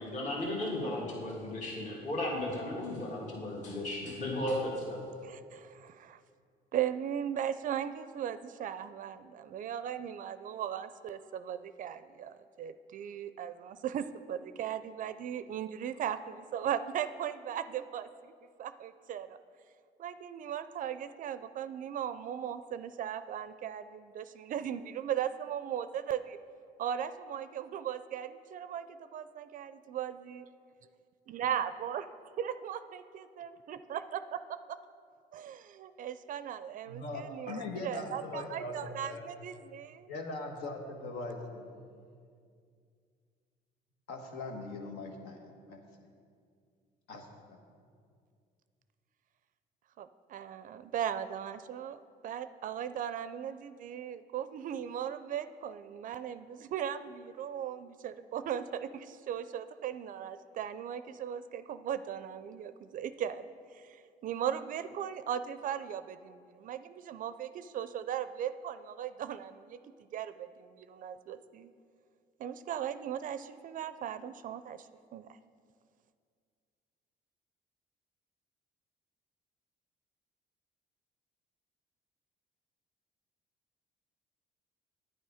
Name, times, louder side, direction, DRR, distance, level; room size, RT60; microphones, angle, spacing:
voice 1, 0.0-5.0, left 1 dB, 45° left, -3 dB, 1.9 m, -35 dB
voice 2, 5.2-6.2 6.7-18.3 18.6-19.4 20.0-26.4 26.8-30.4 31.3-32.1 32.4-34.8 35.3-40.1 50.0-52.0 52.2-69.8 70.1-71.7 72.4-75.4, right 9 dB, 50° right, 12 dB, 0.4 m, -38 dB
voice 3, 36.9-39.3 40.1-41.7 44.1-45.8 47.1-47.6, left 2 dB, 80° left, 3 dB, 1.4 m, -41 dB
9.6 x 9.2 x 4.9 m, 2.2 s
cardioid pair, 110°, 17 cm